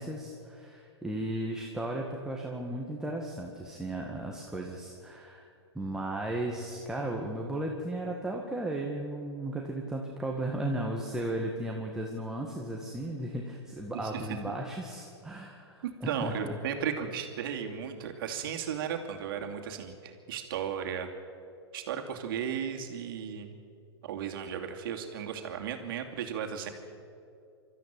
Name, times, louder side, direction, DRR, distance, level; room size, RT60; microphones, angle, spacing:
voice 1, 0.0-5.5 5.7-16.6, right 1 dB, 5° right, 0 dB, 1.9 m, -35 dB
voice 2, 15.8-21.1 21.7-23.5 24.0-26.7, right 8 dB, 55° right, 4 dB, 2.6 m, -35 dB
24.5 x 13.5 x 9.0 m, 2.5 s
hypercardioid pair, 115°, 14 cm